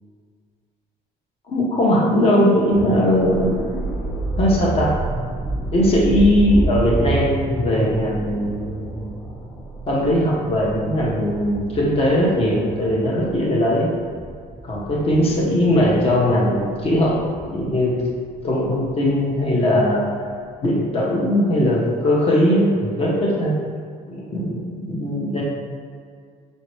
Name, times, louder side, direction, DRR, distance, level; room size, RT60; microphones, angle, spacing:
voice 1, 1.5-3.6 4.4-4.9 5.7-9.1 9.9-13.9 14.6-17.2 17.5-18.0 18.4-20.2 20.6-23.6 24.1-25.4, equal, 35° left, -4 dB, 0.9 m, -19 dB
sound 1, 2.7-20.6 20.9-21.1, right 2 dB, 5° left, 0.9 m, -30 dB
5.2 x 2.7 x 3.1 m, 2.1 s
cardioid pair, 110°, 17 cm